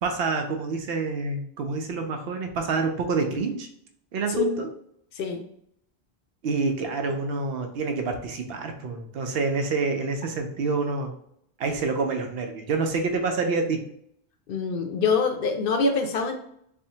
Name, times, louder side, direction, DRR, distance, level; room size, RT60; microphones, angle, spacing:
voice 1, 0.0-3.7 4.1-4.7 6.4-11.1 11.6-13.8, right 4 dB, 75° right, 4 dB, 0.8 m, -27 dB
voice 2, 14.5-16.4, left 4 dB, 65° left, 5 dB, 0.7 m, -25 dB
4.4 x 2.1 x 2.7 m, 0.70 s
omnidirectional pair, 1.1 m